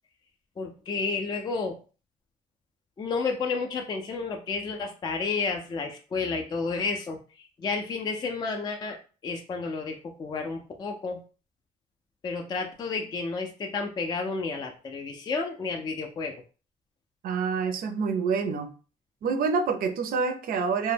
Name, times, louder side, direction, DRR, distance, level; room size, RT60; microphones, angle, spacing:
voice 1, 0.6-1.8 3.0-9.0 9.2-11.2 12.2-16.3, left 4 dB, 25° left, 2 dB, 0.3 m, -31 dB
voice 2, 17.2-18.7 19.2-20.9, right 5 dB, 55° right, 7 dB, 0.5 m, -27 dB
2.1 x 2.0 x 3.2 m, 0.36 s
cardioid pair, 105°, 18 cm